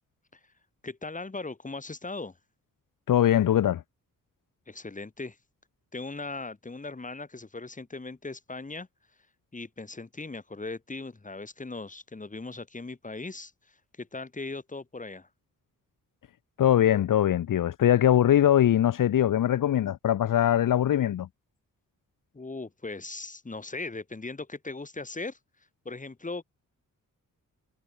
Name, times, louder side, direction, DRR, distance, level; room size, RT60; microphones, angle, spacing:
voice 1, 0.8-2.4 4.7-5.4 5.9-8.9 9.5-15.3 22.3-25.4 25.9-26.4, left 3 dB, 25° left, 3.5 m, -38 dB
voice 2, 3.1-3.8 16.6-21.3, left 11 dB, 75° left, 0.9 m, -22 dB
wide cardioid pair, 110°, 33 cm